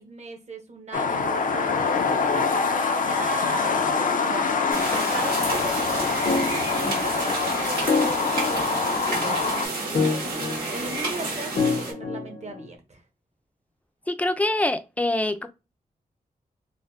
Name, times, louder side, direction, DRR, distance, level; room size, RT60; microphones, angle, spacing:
voice 1, 0.0-6.2 6.7-13.0, right 3 dB, 45° right, 0.8 m, -37 dB
sound 1, 0.9-9.7, left 5 dB, 60° left, 0.5 m, -25 dB
sound 2, 4.6-5.2 6.2-7.3 7.9-9.3 9.9-11.0 11.6-12.6, left 4 dB, 80° left, 0.9 m, -28 dB
sound 3, 4.7-11.9, right 2 dB, 85° right, 1.6 m, -30 dB
voice 2, 14.1-15.5, left 1 dB, 10° left, 0.4 m, -24 dB
4.2 x 2.2 x 2.5 m
cardioid pair, 75°, 15 cm